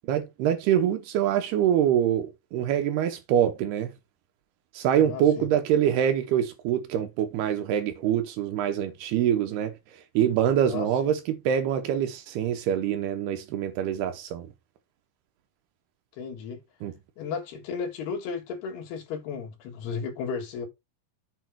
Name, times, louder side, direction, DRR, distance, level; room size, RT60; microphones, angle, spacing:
voice 1, 0.1-3.9 4.7-14.5 16.8-16.9, right 10 dB, 80° right, 3.0 m, -25 dB
voice 2, 5.0-5.5 10.7-11.1 16.2-16.6 17.2-20.7, left 6 dB, 85° left, 3.8 m, -34 dB
8.2 x 5.1 x 4.5 m
omnidirectional pair, 4.5 m